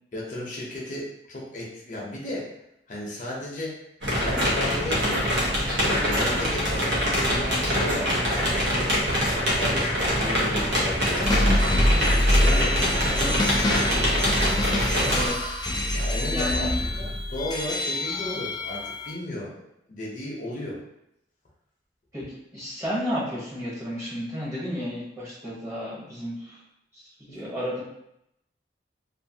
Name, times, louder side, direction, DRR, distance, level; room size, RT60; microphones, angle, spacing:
voice 1, 0.1-2.5 2.9-3.8 4.2-5.3 5.7-8.4 8.8-11.3 12.4-12.9 15.9-19.6 19.9-20.8 27.3-27.4, left 1 dB, 45° left, -4 dB, 0.7 m, -34 dB
sound 1, 4.0-15.3, equal, 85° right, 0.9 m, -24 dB
sound 2, 11.2-19.1, left 1 dB, 25° left, 0.4 m, -25 dB
voice 2, 12.5-13.5 15.1-15.5 16.3-16.7 17.8-18.0 22.1-26.6 26.9-27.8, equal, 15° right, -8 dB, 0.9 m, -33 dB
2.6 x 2.5 x 2.7 m, 0.80 s
head